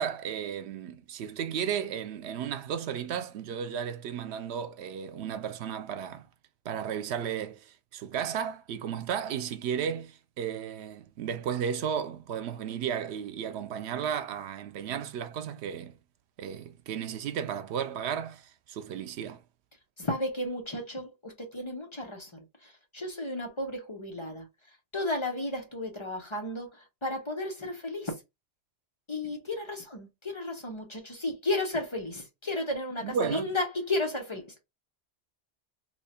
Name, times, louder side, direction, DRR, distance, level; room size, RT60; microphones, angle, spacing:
voice 1, 0.0-6.3 6.6-16.0 16.4-19.4 33.0-33.5, right 8 dB, 90° right, 0.9 m, -34 dB
voice 2, 20.0-24.5 24.9-28.2 29.1-34.6, left 2 dB, 30° left, 0.8 m, -33 dB
2.9 x 2.3 x 4.2 m
omnidirectional pair, 1.1 m